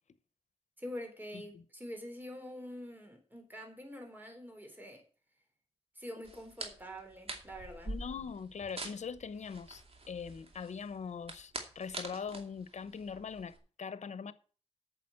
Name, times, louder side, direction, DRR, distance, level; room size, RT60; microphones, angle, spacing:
voice 1, 0.8-5.0 6.0-7.9, equal, 15° right, 3.7 m, -45 dB
sound 1, 6.2-13.6, right 2 dB, 55° right, 2.5 m, -46 dB
voice 2, 7.8-14.3, left 6 dB, 80° left, 0.9 m, -42 dB
9.1 x 7.0 x 8.5 m
wide cardioid pair, 75°, 12 cm